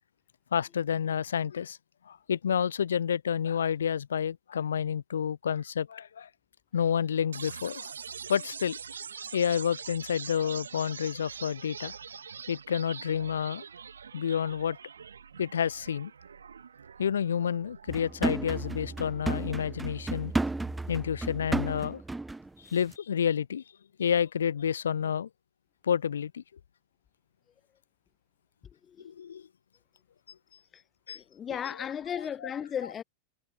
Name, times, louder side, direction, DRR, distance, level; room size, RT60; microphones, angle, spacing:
voice 1, 0.5-1.8 2.1-6.3 6.7-7.9 8.3-8.8 9.3-12.0 12.5-13.6 14.1-14.8 15.4-16.1 17.0-20.3 20.9-22.0 22.6-23.6 24.0-25.3 25.8-26.4 29.0-29.4 31.1-31.2, left 8 dB, 65° left, 0.5 m, -29 dB
sound 1, 7.3-21.3, right 7 dB, 70° right, 1.9 m, -45 dB
sound 2, 17.9-22.5 22.8-22.9, right 2 dB, 5° right, 0.8 m, -33 dB
voice 2, 31.1-33.0, left 8 dB, 25° left, 0.6 m, -35 dB
figure-of-eight pair, 90°, 0 cm